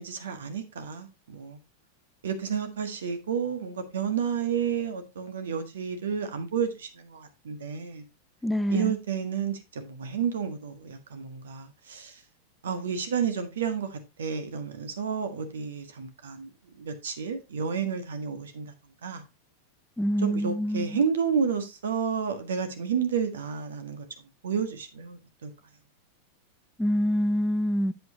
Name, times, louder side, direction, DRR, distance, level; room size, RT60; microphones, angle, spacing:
voice 1, 0.0-1.6 2.2-8.0 8.7-12.2 12.6-16.5 16.7-18.7 19.0-19.2 20.2-24.1 24.4-25.5, right 7 dB, 65° right, 1.5 m, -31 dB
voice 2, 8.4-9.0 20.0-21.0 26.8-27.9, equal, 5° left, 0.6 m, -26 dB
7.9 x 7.8 x 2.8 m
figure-of-eight pair, 90°, 0 cm